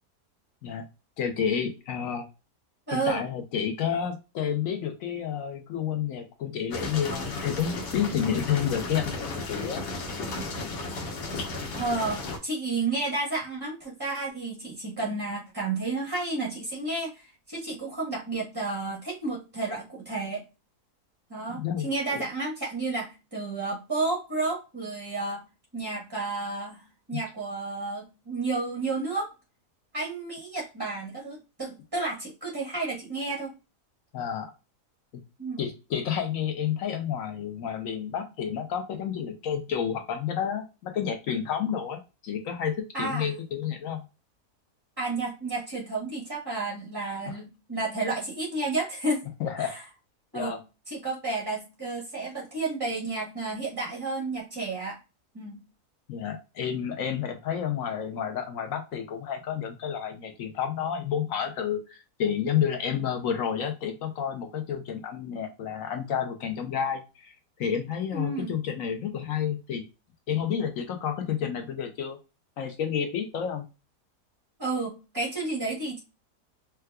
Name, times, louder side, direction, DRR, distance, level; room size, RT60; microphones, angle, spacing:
voice 1, 1.2-2.3 2.9-9.8 21.5-22.2 34.1-34.5 35.6-44.0 47.3-47.4 49.4-49.8 50.3-50.6 56.1-67.3 67.6-69.8 70.3-72.2 72.6-73.6, left 8 dB, 65° left, 5 dB, 0.9 m, -30 dB
voice 2, 2.9-3.2 11.7-20.4 21.3-25.4 25.7-26.8 27.1-29.3 29.9-33.5 35.4-35.6 42.9-43.3 45.0-49.2 49.6-49.8 50.3-50.6 50.9-55.0 55.3-55.6 68.1-68.5 74.6-76.0, right 3 dB, 25° right, -3 dB, 0.5 m, -31 dB
sound 1, 6.7-12.4, left 2 dB, 90° left, 1.4 m, -34 dB
4.6 x 2.2 x 2.2 m, 0.28 s
omnidirectional pair, 1.7 m